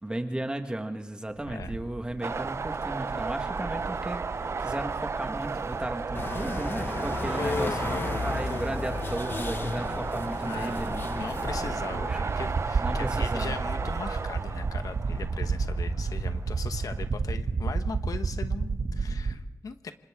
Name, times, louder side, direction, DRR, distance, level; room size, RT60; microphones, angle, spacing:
voice 1, 0.0-11.4 12.0-12.3 12.8-13.6, right 1 dB, 15° right, 6 dB, 1.5 m, -35 dB
sound 1, 1.4-19.3, right 4 dB, 65° right, 2.1 m, -32 dB
sound 2, 2.2-17.1, right 4 dB, 50° right, 0.6 m, -34 dB
sound 3, 6.1-11.8, left 3 dB, 40° left, 1.0 m, -34 dB
voice 2, 7.4-8.7 10.4-10.8 11.2-19.9, left 5 dB, 85° left, 9 dB, 1.1 m, -38 dB
27.5 x 26.0 x 3.7 m, 0.95 s
wide cardioid pair, 125°, 6 cm